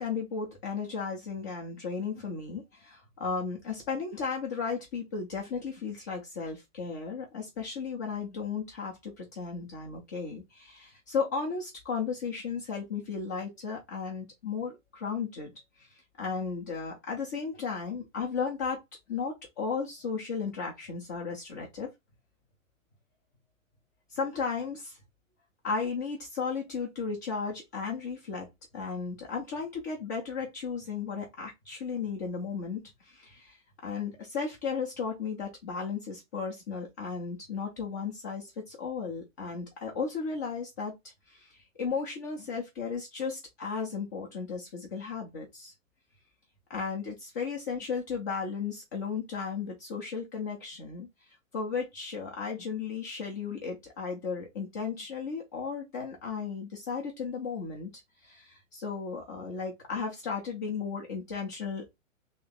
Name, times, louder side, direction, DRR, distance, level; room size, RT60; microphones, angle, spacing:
voice 1, 0.0-15.5 15.8-18.8 19.1-21.9 24.1-25.0 25.6-28.5 28.7-33.6 33.8-40.9 41.3-45.7 46.7-51.1 51.5-57.9 58.2-62.0, left 5 dB, 15° left, 0.4 m, -35 dB
3.1 x 2.8 x 3.7 m
figure-of-eight pair, 115°, 40 cm